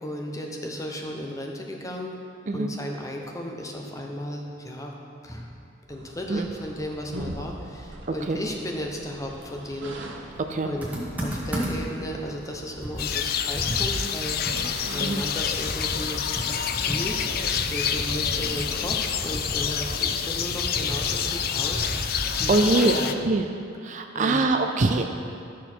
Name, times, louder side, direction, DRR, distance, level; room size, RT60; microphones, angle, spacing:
voice 1, 0.0-2.2 2.5-4.9 5.2-5.5 5.9-10.0 10.2-10.3 10.6-10.9 11.2-14.4 14.9-16.2 16.8-22.1 22.4-23.1 24.1-24.4, equal, 15° left, 1 dB, 0.8 m, -34 dB
sound 1, 5.9-19.6, right 1 dB, 75° right, 0.9 m, -43 dB
Computer keyboard, 10.8-12.0 12.4-12.5 12.8-22.7, right 1 dB, 10° right, 1.4 m, -34 dB
sound 2, 13.0-23.1, left 8 dB, 50° left, 0.4 m, -28 dB
voice 2, 22.3-23.0 23.2-23.4 23.8-25.0, right 3 dB, 40° right, 5 dB, 0.4 m, -23 dB
12.0 x 6.2 x 4.5 m, 2.6 s
head